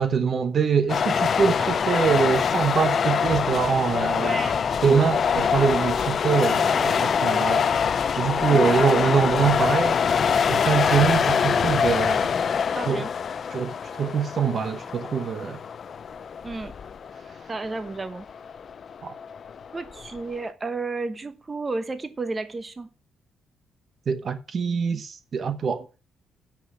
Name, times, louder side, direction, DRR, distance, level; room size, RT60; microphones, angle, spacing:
voice 1, 0.0-4.4 4.8-7.7 8.2-10.0 10.5-12.3 12.9-13.0 13.5-15.6 19.0-19.1 24.1-25.9, right 6 dB, 50° right, 1.1 m, -24 dB
sound 1, 0.9-20.5, left 7 dB, 50° left, 0.5 m, -24 dB
voice 2, 4.2-4.6 8.5-8.8 12.7-13.1 16.4-16.7 17.5-18.2 19.7-22.9, right 3 dB, 25° right, 1.1 m, -32 dB
8.1 x 6.0 x 6.4 m
cardioid pair, 90°, 0 cm